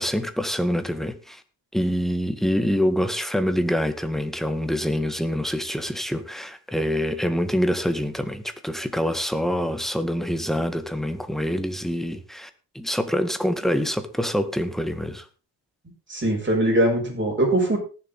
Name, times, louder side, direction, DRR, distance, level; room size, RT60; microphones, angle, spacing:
voice 1, 0.0-1.4 1.7-15.3, equal, ahead, 1.9 m, -25 dB
voice 2, 16.1-17.8, right 1 dB, 30° right, 6.8 m, -21 dB
19.0 x 7.6 x 3.9 m
supercardioid pair, 70°, 40 cm